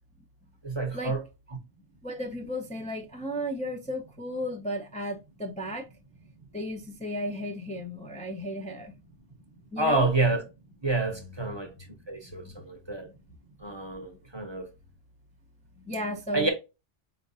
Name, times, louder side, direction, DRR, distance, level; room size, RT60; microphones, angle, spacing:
voice 1, 0.6-1.2 9.8-10.4 10.8-11.7 12.1-13.1 13.6-14.7 16.3-16.5, right 2 dB, 25° right, 0.7 m, -28 dB
voice 2, 2.0-5.9 6.5-8.9 9.7-10.1 11.1-11.4 12.4-12.5 15.8-16.5, equal, 10° left, 0.4 m, -34 dB
4.8 x 3.2 x 2.5 m
omnidirectional pair, 1.2 m